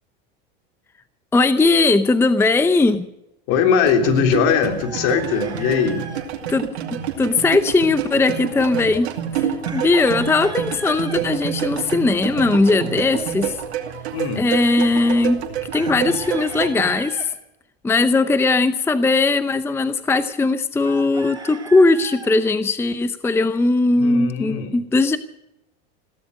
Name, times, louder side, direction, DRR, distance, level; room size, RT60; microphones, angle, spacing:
voice 1, 1.3-3.1 6.5-13.6 14.4-15.4 15.7-17.3 17.8-25.2, left 3 dB, 10° left, 12 dB, 0.7 m, -19 dB
voice 2, 3.5-6.1 14.1-14.5 24.0-24.8, left 7 dB, 60° left, 5 dB, 3.3 m, -20 dB
sound 1, 3.8-16.9, right 9 dB, 90° right, 2.5 m, -28 dB
Chicken rooster, 4.8-6.3 9.6-11.2 15.7-17.3 20.8-22.3, right 3 dB, 15° right, 3.2 m, -37 dB
16.5 x 13.0 x 6.6 m, 0.91 s
supercardioid pair, 120°, 32 cm